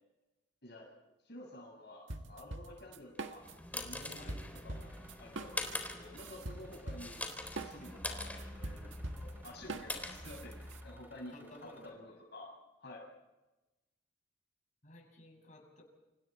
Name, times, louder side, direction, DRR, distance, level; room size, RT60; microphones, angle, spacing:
voice 1, 1.2-3.4 3.7-4.4 4.6-7.3 7.6-12.5 12.8-13.1, left 1 dB, 65° left, 0 dB, 6.3 m, -51 dB
sound 1, 2.1-10.8, right 2 dB, 85° right, 1.8 m, -44 dB
sound 2, 3.2-11.0, left 2 dB, 10° left, 3.8 m, -44 dB
sound 3, 4.7-11.9, right 1 dB, 10° right, 5.4 m, -63 dB
voice 2, 11.3-12.2 14.8-15.8, left 1 dB, 45° left, 0 dB, 7.0 m, -55 dB
30.0 x 26.5 x 4.5 m, 1.0 s
head